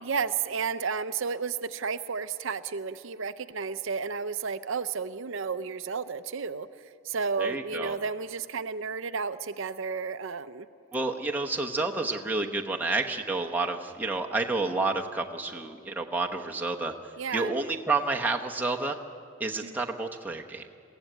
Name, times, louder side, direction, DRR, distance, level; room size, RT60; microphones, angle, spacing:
voice 1, 0.0-10.7 17.2-17.5 19.6-19.8, right 5 dB, 65° right, 12 dB, 0.6 m, -32 dB
voice 2, 7.4-7.9 10.9-16.9 17.3-19.0 19.4-20.7, right 3 dB, 10° right, 1 dB, 1.0 m, -29 dB
22.0 x 15.5 x 9.1 m, 2.4 s
head